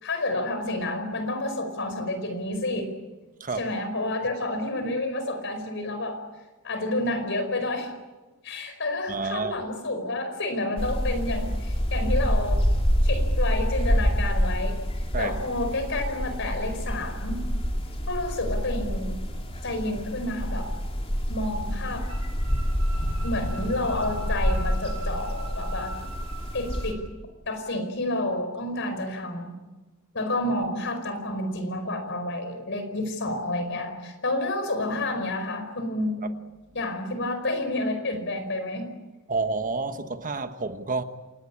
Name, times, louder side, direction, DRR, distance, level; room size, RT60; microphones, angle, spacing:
voice 1, 0.0-2.9 3.6-6.2 6.6-7.9 8.4-12.7 13.0-14.8 15.2-17.4 18.1-19.1 19.6-20.7 21.3-22.1 23.2-25.9 26.5-27.0 27.5-29.6 30.1-36.2 36.7-38.9, left 2 dB, 60° left, 8 dB, 5.0 m, -29 dB
voice 2, 9.1-9.6 15.1-15.3 36.2-36.3 39.3-41.0, right 3 dB, 40° right, 9 dB, 1.3 m, -29 dB
sound 1, 10.8-26.9, equal, 30° left, 3.4 m, -27 dB
sound 2, 22.1-26.9, right 2 dB, 70° right, 6.1 m, -43 dB
Motorcycle, 22.9-26.8, equal, 90° left, 4.2 m, -39 dB
28.0 x 18.5 x 8.7 m, 1.2 s
head